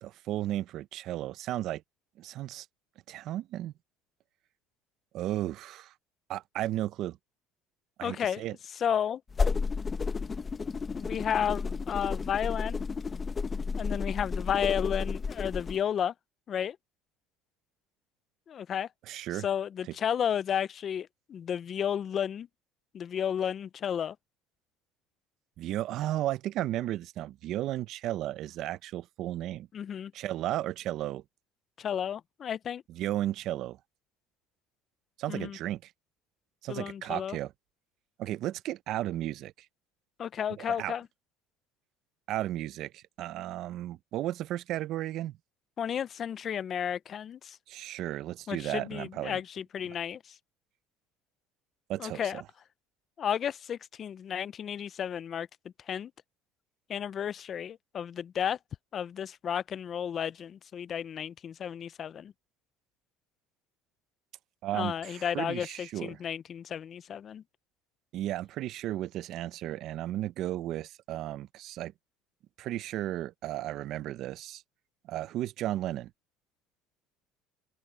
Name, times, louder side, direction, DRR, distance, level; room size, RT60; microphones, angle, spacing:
voice 1, 0.0-1.8 2.2-2.7 3.1-3.7 5.1-5.9 6.3-7.2 8.0-8.6 19.1-19.5 25.6-29.7 30.1-31.2 32.9-33.8 35.2-35.9 36.6-37.5 38.2-39.5 40.6-40.9 42.3-45.4 47.7-49.4 51.9-52.4 64.6-66.2 68.1-71.9 72.6-74.6 75.1-76.1, right 14 dB, 60° right, 0.7 m, -34 dB
voice 2, 8.0-9.2 11.0-12.8 13.8-16.1 16.5-16.8 18.5-18.9 19.3-22.5 22.9-24.2 29.7-30.1 31.8-32.8 35.3-35.6 36.7-37.4 40.2-41.1 45.8-47.6 48.5-50.4 52.0-52.4 53.2-55.5 55.9-56.1 56.9-58.6 58.9-62.3 64.7-67.4, left 8 dB, 40° left, 0.5 m, -32 dB
sound 1, 9.3-15.8, left 4 dB, 25° left, 0.9 m, -32 dB
open air
supercardioid pair, 105°, 0 cm